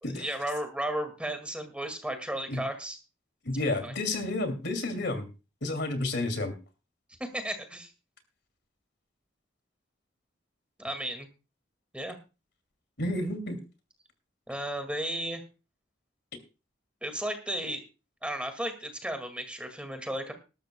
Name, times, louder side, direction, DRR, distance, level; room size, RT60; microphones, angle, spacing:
voice 1, 0.0-3.0 3.8-3.9 7.2-7.9 10.8-11.3 11.9-12.2 14.5-15.4 17.0-17.8 18.2-20.3, right 1 dB, 5° right, 7 dB, 2.0 m, -34 dB
voice 2, 3.4-5.3 5.6-6.5 13.0-13.6, left 2 dB, 60° left, 8 dB, 2.5 m, -30 dB
20.5 x 12.5 x 2.2 m, 0.31 s
head